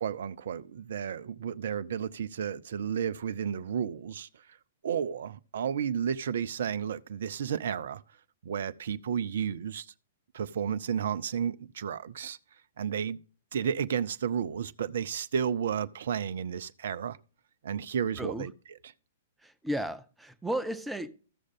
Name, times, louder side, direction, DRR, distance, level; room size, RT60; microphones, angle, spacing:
voice 1, 0.0-4.3 4.8-8.0 8.4-9.9 10.3-12.4 12.8-13.2 13.5-17.2 17.6-18.5, right 8 dB, 55° right, 0.5 m, -32 dB
voice 2, 19.4-21.1, right 1 dB, 5° right, 0.7 m, -34 dB
14.5 x 6.4 x 3.6 m
figure-of-eight pair, 110°, 0 cm